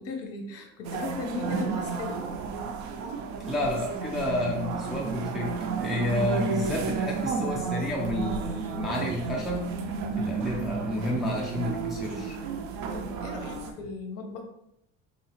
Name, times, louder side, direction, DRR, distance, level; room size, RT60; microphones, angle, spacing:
voice 1, 0.0-2.3 12.9-14.4, left 3 dB, 55° left, 3 dB, 0.8 m, -37 dB
sound 1, 0.8-13.7, right 5 dB, 70° right, 0.5 m, -32 dB
voice 2, 3.5-9.7 10.2-12.4, left 1 dB, ahead, -4 dB, 0.5 m, -30 dB
3.9 x 2.8 x 2.9 m, 0.77 s
cardioid pair, 160°, 29 cm